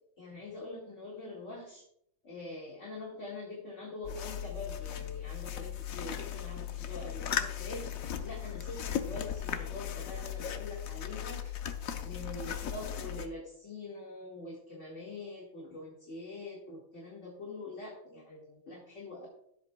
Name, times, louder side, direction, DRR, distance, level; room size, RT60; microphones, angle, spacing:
voice 1, 0.2-1.8 2.2-7.9 8.2-11.5 12.0-19.3, left 2 dB, 35° left, -4 dB, 2.0 m, -44 dB
sound 1, 4.0-13.3, left 9 dB, 90° left, 0.7 m, -37 dB
14.5 x 7.9 x 2.3 m, 0.72 s
omnidirectional pair, 2.4 m